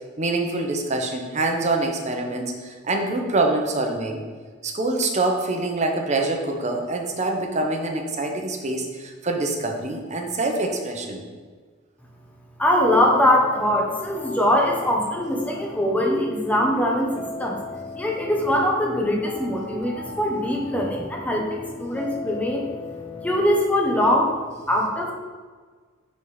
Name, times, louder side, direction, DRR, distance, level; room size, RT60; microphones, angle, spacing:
voice 1, 0.2-4.2 4.6-11.2, right 2 dB, 35° right, 3 dB, 0.8 m, -25 dB
voice 2, 12.6-17.6 17.9-22.7 23.2-24.4 24.7-25.1, left 1 dB, 10° left, -1 dB, 1.0 m, -22 dB
sound 1, 12.8-23.6, left 3 dB, 25° left, 0.6 m, -38 dB
4.9 x 4.2 x 5.5 m, 1.5 s
head